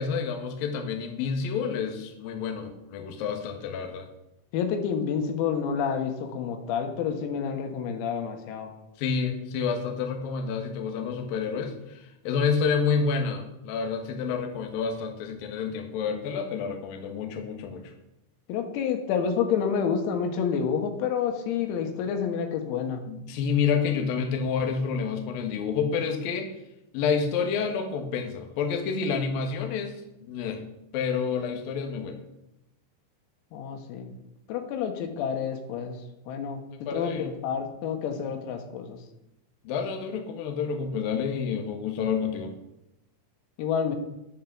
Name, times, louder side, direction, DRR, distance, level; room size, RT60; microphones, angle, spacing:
voice 1, 0.0-4.1 9.0-17.9 23.1-26.5 26.9-30.0 30.3-30.6 30.9-32.2 36.7-37.4 39.6-42.5, left 6 dB, 65° left, 3 dB, 2.5 m, -29 dB
voice 2, 4.5-8.7 18.5-23.0 33.5-34.1 34.5-36.0 36.3-39.0 43.6-44.0, left 7 dB, 90° left, 5 dB, 4.2 m, -29 dB
10.5 x 8.7 x 7.2 m, 0.88 s
omnidirectional pair, 5.9 m